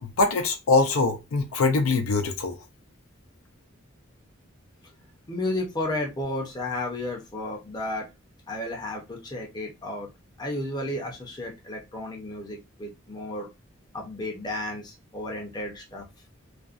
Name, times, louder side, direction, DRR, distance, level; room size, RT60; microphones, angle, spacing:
voice 1, 0.0-2.5, left 3 dB, 85° left, 0.5 m, -23 dB
voice 2, 5.3-8.1 8.5-10.1 10.4-13.5 13.9-16.0, left 1 dB, 20° left, 0.6 m, -32 dB
2.5 x 2.1 x 2.4 m
head